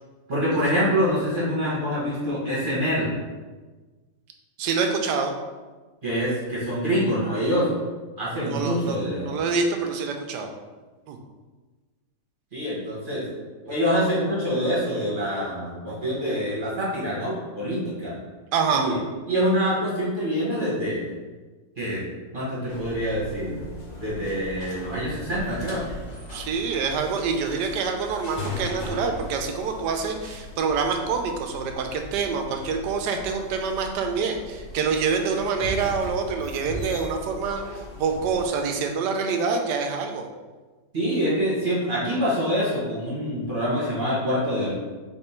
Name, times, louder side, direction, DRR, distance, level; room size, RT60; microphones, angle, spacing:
voice 1, 0.3-3.1 6.0-7.7 8.2-9.5 12.5-13.2 13.6-18.1 18.7-19.0 19.3-21.1 21.8-22.0 22.3-23.6 24.0-25.9 40.9-44.7, equal, 35° right, -7 dB, 1.2 m, -25 dB
voice 2, 4.6-5.3 8.4-10.5 11.1-11.2 18.5-18.9 26.3-40.3, right 5 dB, 75° right, 4 dB, 1.1 m, -26 dB
sound 1, 22.7-38.5, left 1 dB, 55° left, 0.5 m, -38 dB
3.5 x 3.4 x 4.3 m, 1.3 s
omnidirectional pair, 1.9 m